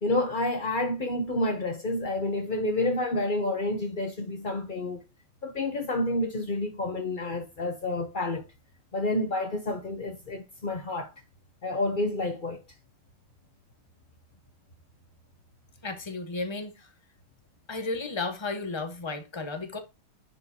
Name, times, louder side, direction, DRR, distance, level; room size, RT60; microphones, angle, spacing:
voice 1, 0.0-5.0 5.4-8.4 8.9-11.1 11.6-12.6, left 2 dB, 80° left, 0.4 m, -29 dB
voice 2, 15.8-16.9 17.7-19.8, left 3 dB, 25° left, 0.7 m, -33 dB
10.0 x 4.7 x 2.7 m
omnidirectional pair, 2.3 m